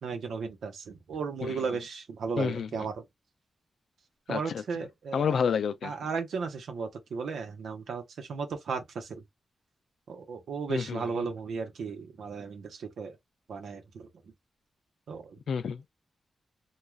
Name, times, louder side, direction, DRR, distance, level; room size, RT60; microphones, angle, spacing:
voice 1, 0.0-3.0 4.3-5.4 5.8-9.2 10.1-13.2 13.5-14.1 15.1-15.4, right 5 dB, 90° right, 0.8 m, -35 dB
voice 2, 2.4-2.7 4.3-4.6 5.1-5.9 10.7-11.1 15.5-15.9, left 6 dB, 80° left, 0.3 m, -29 dB
2.3 x 2.3 x 3.2 m
cardioid pair, 85°, 0 cm